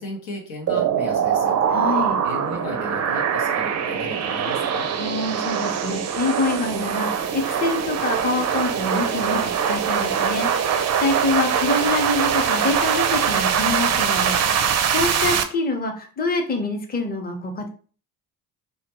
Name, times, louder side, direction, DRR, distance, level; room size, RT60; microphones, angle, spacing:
voice 1, 0.0-1.6 2.2-4.9, left 2 dB, 90° left, 0 dB, 0.8 m, -35 dB
sound 1, 0.7-15.4, right 7 dB, 40° right, 0.4 m, -22 dB
voice 2, 1.7-2.2 5.0-17.7, left 2 dB, 20° left, 3 dB, 0.6 m, -26 dB
2.2 x 2.1 x 2.9 m, 0.41 s
supercardioid pair, 50°, 43 cm